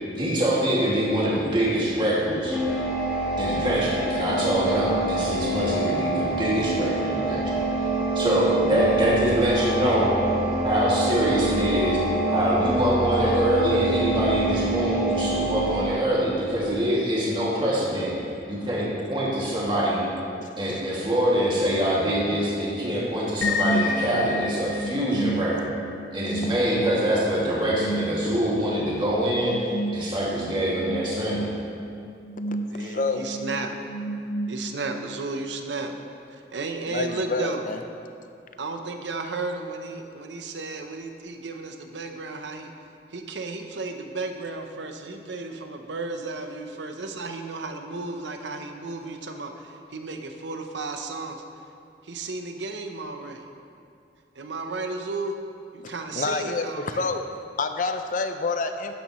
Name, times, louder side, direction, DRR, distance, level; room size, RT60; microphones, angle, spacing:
voice 1, 0.2-2.6 3.4-7.5 8.1-10.1 10.6-12.0 12.3-18.1 18.5-20.0 20.6-25.7 26.1-29.6 29.9-31.4, right 1 dB, 30° right, -7 dB, 2.3 m, -24 dB
sound 1, 2.5-15.8, right 2 dB, 5° right, 1.5 m, -26 dB
voice 2, 20.4-20.8 26.2-26.5 32.7-33.3 36.9-37.8 55.8-57.2 57.6-58.9, left 3 dB, 45° left, 7 dB, 0.6 m, -29 dB
sound 2, 23.4-35.0, equal, 85° left, 0.7 m, -31 dB
voice 3, 32.7-33.7 34.5-35.9 36.5-37.6 38.6-42.7 43.1-51.4 52.0-53.5 54.4-55.4 55.7-57.1, right 3 dB, 90° right, 5 dB, 0.8 m, -33 dB
12.5 x 9.5 x 3.1 m, 2.5 s
head